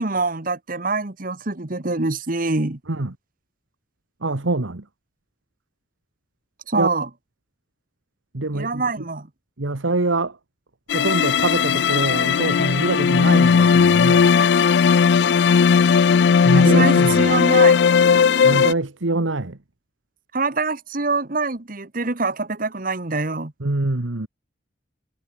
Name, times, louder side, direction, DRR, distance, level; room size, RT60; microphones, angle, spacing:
voice 1, 0.0-2.8 6.7-7.1 8.5-9.3 16.5-17.8 20.3-23.5, right 3 dB, 45° right, 1.4 m, -24 dB
voice 2, 4.2-4.9 6.7-6.9 8.3-9.1 9.6-10.4 10.9-14.4 16.4-17.3 18.4-19.6 23.6-24.3, right 2 dB, 90° right, 1.5 m, -24 dB
sound 1, 10.9-18.7, left 6 dB, 60° left, 0.4 m, -16 dB
head